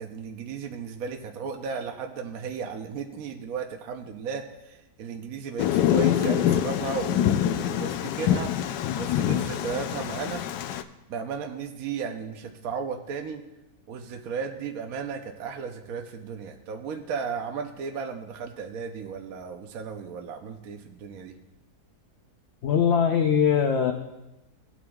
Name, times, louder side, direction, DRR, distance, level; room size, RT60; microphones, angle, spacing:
voice 1, 0.0-8.5 9.0-10.4 11.1-13.4 13.9-21.3, right 6 dB, 65° right, 4 dB, 1.1 m, -35 dB
Thunder, 5.6-10.8, left 10 dB, 85° left, 1.2 m, -25 dB
voice 2, 22.6-23.9, left 7 dB, 65° left, 5 dB, 0.6 m, -21 dB
17.5 x 8.6 x 2.3 m, 0.98 s
omnidirectional pair, 1.8 m